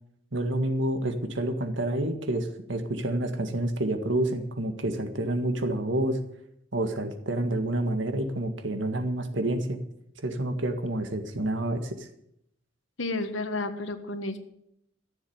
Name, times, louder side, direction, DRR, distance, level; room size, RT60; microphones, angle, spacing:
voice 1, 0.3-6.2 6.7-9.8 10.2-12.1, right 1 dB, 70° right, 7 dB, 1.9 m, -28 dB
voice 2, 13.0-14.4, left 2 dB, 90° left, 8 dB, 1.6 m, -31 dB
14.0 x 7.5 x 9.6 m, 0.75 s
head